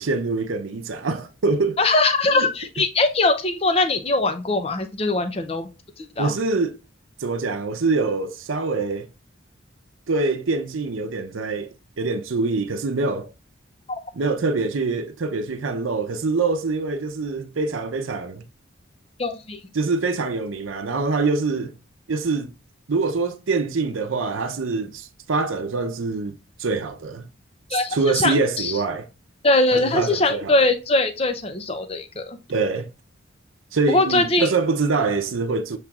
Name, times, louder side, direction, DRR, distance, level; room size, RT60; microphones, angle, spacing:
voice 1, 0.0-1.8 2.4-2.5 6.2-6.8 7.2-9.1 10.1-13.3 14.1-18.5 19.7-21.8 22.1-22.5 22.9-27.3 27.7-29.1 29.7-30.7 32.5-32.9 33.7-35.8, right 3 dB, 85° right, 0.6 m, -24 dB
voice 2, 1.8-5.7 6.0-6.3 13.9-14.0 19.2-19.6 27.7-28.7 29.4-32.4 33.9-34.5, left 2 dB, 30° left, 0.5 m, -21 dB
7.3 x 3.0 x 2.3 m
head